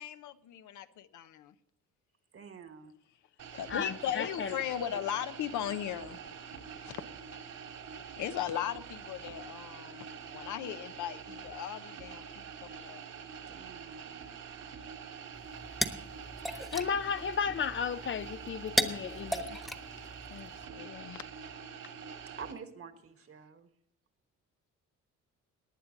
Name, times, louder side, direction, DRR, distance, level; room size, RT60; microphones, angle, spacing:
voice 1, 0.0-1.5 3.5-6.2 6.8-7.0 8.2-10.1 10.3-13.0 20.3-21.3, left 10 dB, 80° left, 0.9 m, -38 dB
voice 2, 2.3-2.9 13.5-14.3 15.9-16.0 22.3-23.7, right 6 dB, 45° right, 1.5 m, -48 dB
sound 1, 3.4-22.5, right 6 dB, 70° right, 2.5 m, -46 dB
voice 3, 3.7-4.5 16.4-19.6, left 6 dB, 40° left, 0.5 m, -34 dB
sound 2, 15.3-20.6, equal, ahead, 1.2 m, -37 dB
19.0 x 8.9 x 3.9 m
cardioid pair, 90°, 30 cm